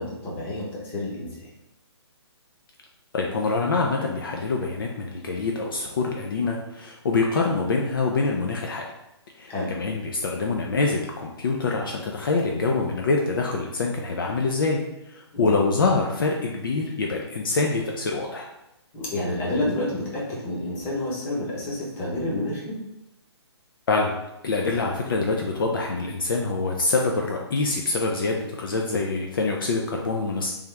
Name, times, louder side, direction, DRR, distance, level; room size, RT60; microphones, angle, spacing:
voice 1, 0.0-1.5 9.5-9.7 15.3-15.8 18.9-22.8, left 1 dB, 15° left, -5 dB, 0.9 m, -29 dB
voice 2, 3.1-8.9 9.4-14.8 15.1-18.5 23.9-24.1 24.4-30.5, left 3 dB, 50° left, 0 dB, 0.5 m, -25 dB
3.5 x 3.0 x 3.4 m, 0.91 s
hypercardioid pair, 160°, 15 cm